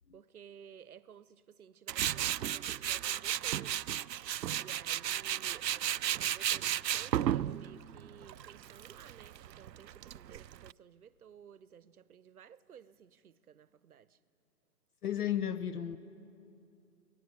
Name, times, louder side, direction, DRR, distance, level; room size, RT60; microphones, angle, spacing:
voice 1, 0.1-3.9 4.1-14.2, right 8 dB, 60° right, 0.9 m, -55 dB
Tools, 1.9-10.7, right 11 dB, 90° right, 0.6 m, -34 dB
voice 2, 15.0-16.0, left 10 dB, 65° left, 1.0 m, -33 dB
24.5 x 18.5 x 9.5 m
hypercardioid pair, 155°, 49 cm